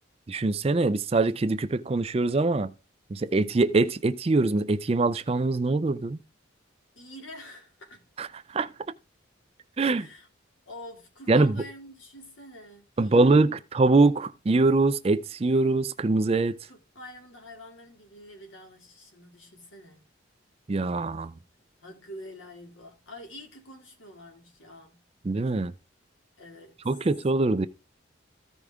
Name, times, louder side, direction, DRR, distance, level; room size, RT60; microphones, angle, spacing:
voice 1, 0.3-2.7 3.1-6.2 8.2-8.7 9.8-10.1 11.3-11.6 13.0-16.6 20.7-21.3 25.2-25.7 26.9-27.7, right 3 dB, 30° right, 0.4 m, -23 dB
voice 2, 7.0-8.1 9.9-10.3 10.7-13.4 16.7-20.0 21.8-25.0 26.4-26.8, left 1 dB, 80° left, 2.4 m, -46 dB
14.5 x 5.0 x 3.6 m
head